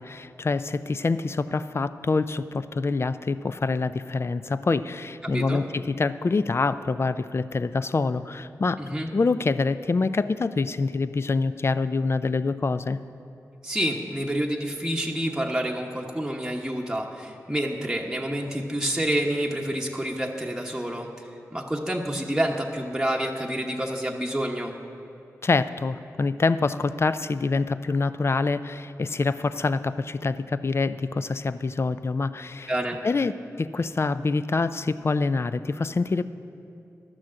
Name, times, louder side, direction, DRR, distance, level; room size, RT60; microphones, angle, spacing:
voice 1, 0.0-8.8 9.1-13.0 25.4-32.7 33.0-36.2, left 3 dB, 45° left, 13 dB, 0.4 m, -26 dB
voice 2, 5.2-5.6 8.8-9.1 13.6-24.7 32.7-33.0, right 1 dB, 10° right, -1 dB, 1.0 m, -28 dB
11.5 x 6.2 x 7.6 m, 2.7 s
cardioid pair, 45°, 6 cm